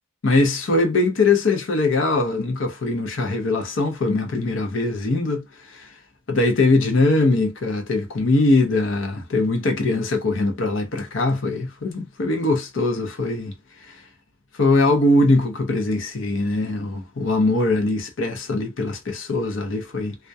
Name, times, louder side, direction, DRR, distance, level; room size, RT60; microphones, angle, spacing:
voice 1, 0.2-5.9 6.3-13.5 13.9-14.0 14.6-20.2, left 2 dB, 65° left, 0.6 m, -21 dB
2.3 x 2.1 x 2.6 m
head